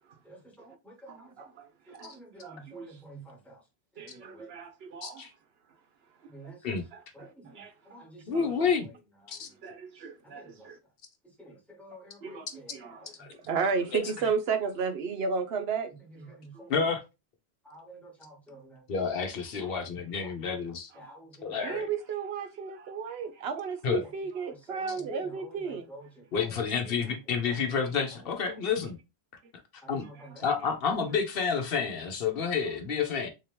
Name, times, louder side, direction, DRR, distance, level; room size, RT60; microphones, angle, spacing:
voice 1, 0.2-1.5 1.9-3.7 3.9-4.6 6.3-6.8 7.1-9.6 10.2-10.8 11.2-13.3 14.1-14.3 16.0-16.8 17.6-18.9 19.5-20.6 20.9-21.9 24.0-24.1 24.5-27.8 28.1-28.6 29.8-30.6, right 1 dB, ahead, 1.1 m, -50 dB
voice 2, 1.1-2.1 2.4-2.9 4.0-5.2 6.7-7.7 8.3-8.7 9.6-10.8 12.2-12.5 12.7-13.1 13.4-15.9 16.5-16.7 21.6-25.9, right 5 dB, 70° right, 0.9 m, -34 dB
voice 3, 8.3-8.9 9.3-9.5 13.2-13.3 13.9-14.0 16.7-17.0 18.9-20.9 21.4-21.9 23.8-24.1 26.3-29.0 29.9-30.0 30.4-33.3, left 6 dB, 65° left, 1.0 m, -29 dB
3.7 x 2.8 x 3.3 m
omnidirectional pair, 1.1 m